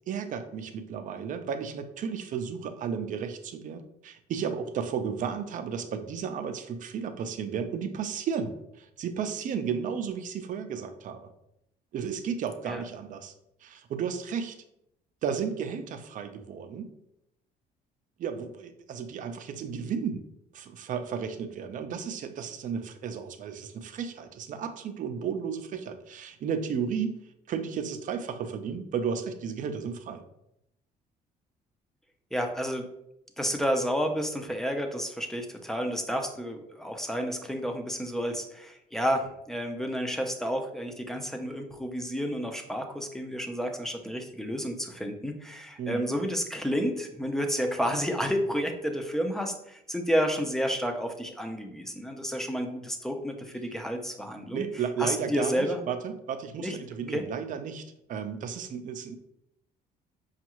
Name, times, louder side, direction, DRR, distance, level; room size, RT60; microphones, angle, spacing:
voice 1, 0.1-11.3 11.9-13.3 13.6-14.6 15.2-16.9 18.2-20.2 20.5-27.2 27.5-30.2 45.8-46.1 54.5-59.2, right 7 dB, 50° right, 8 dB, 0.5 m, -33 dB
voice 2, 32.3-32.9 33.4-54.7 55.0-55.8 56.6-56.8 57.1-57.2, equal, 5° left, 4 dB, 0.5 m, -30 dB
5.2 x 2.4 x 2.9 m, 0.79 s
cardioid pair, 110°, 17 cm